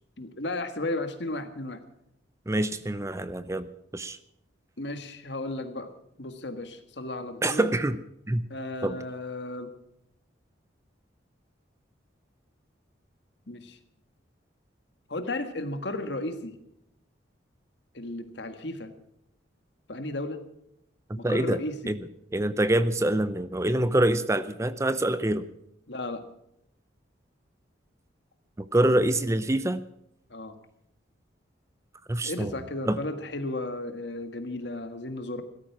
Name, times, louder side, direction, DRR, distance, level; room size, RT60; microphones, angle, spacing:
voice 1, 0.2-1.8 4.8-5.9 6.2-7.7 8.5-9.7 13.5-13.8 15.1-16.6 17.9-18.9 19.9-20.5 21.1-22.0 25.9-26.2 30.3-30.6 32.2-35.4, left 2 dB, 65° left, 8 dB, 1.7 m, -34 dB
voice 2, 2.5-3.7 3.9-4.2 7.4-8.0 8.3-8.4 8.8-9.0 21.1-21.6 21.9-22.0 22.3-25.4 28.6-29.8 32.1-32.5 32.9-33.0, right 1 dB, 15° right, 13 dB, 0.6 m, -25 dB
17.0 x 13.0 x 6.0 m, 0.78 s
head